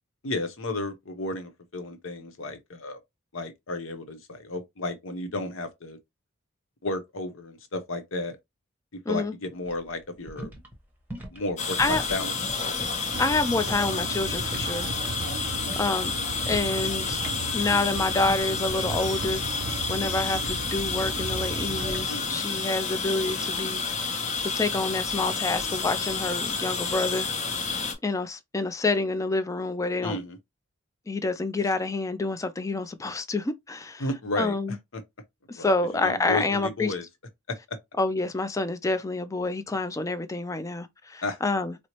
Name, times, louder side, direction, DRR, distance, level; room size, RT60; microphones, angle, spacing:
voice 1, 0.2-3.0 3.3-6.0 6.8-8.4 9.1-10.5 11.3-12.3 22.1-22.4 30.0-30.4 34.0-34.6 34.9-35.0 35.5-35.7 35.9-37.0 37.5-37.8 41.2-41.4, left 2 dB, 70° left, 0.8 m, -33 dB
sound 1, 9.6-13.4 13.7-15.3 15.6-16.0 16.4-16.7 17.0-19.7 20.2-20.9 21.7-22.0, equal, 10° right, 0.9 m, -41 dB
sound 2, 11.6-27.9, left 4 dB, 35° left, 0.7 m, -30 dB
sound 3, 13.1-22.1, right 4 dB, 60° right, 0.4 m, -36 dB
voice 2, 13.2-14.9 15.8-16.1 16.5-17.2 17.5-19.4 19.9-23.8 24.5-27.3 28.0-30.2 31.1-34.0 34.4-34.8 35.5-36.9 38.0-41.7, left 3 dB, 15° left, 0.3 m, -28 dB
4.4 x 2.0 x 2.9 m
head